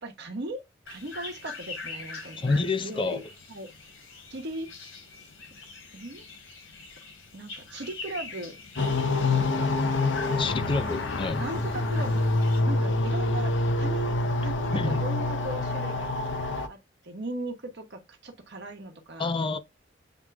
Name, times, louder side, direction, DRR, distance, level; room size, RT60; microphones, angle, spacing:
voice 1, 0.0-3.2 3.5-3.7 4.3-4.7 5.9-6.2 7.3-8.6 9.3-9.6 10.2-10.5 11.4-12.3 12.6-16.1 16.7-16.8 17.0-19.3, right 1 dB, 60° right, 1.2 m, -38 dB
sound 1, 0.9-12.6, left 4 dB, 80° left, 3.0 m, -44 dB
voice 2, 2.4-3.2 10.4-11.4 14.7-15.0 19.2-19.6, left 3 dB, 25° left, 0.4 m, -28 dB
sound 2, 8.8-16.7, left 2 dB, 65° left, 0.7 m, -26 dB
8.0 x 2.9 x 2.3 m
head